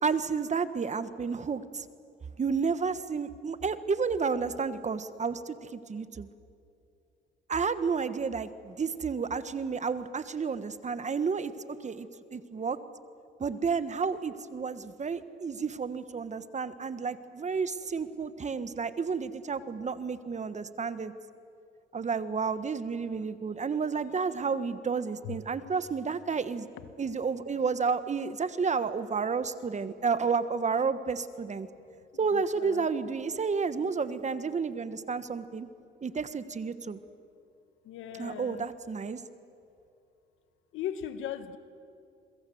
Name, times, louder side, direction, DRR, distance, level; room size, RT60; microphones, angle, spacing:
voice 1, 0.0-1.8 2.4-6.3 7.5-12.8 13.4-21.1 21.9-26.7 27.0-31.7 32.2-35.7 36.0-37.0 38.2-39.2, right 5 dB, 35° right, 12 dB, 1.4 m, -31 dB
voice 2, 32.3-32.9 37.8-38.7 40.7-41.6, left 10 dB, 90° left, 11 dB, 1.5 m, -38 dB
27.5 x 22.5 x 7.9 m, 2.6 s
cardioid pair, 90°, 20 cm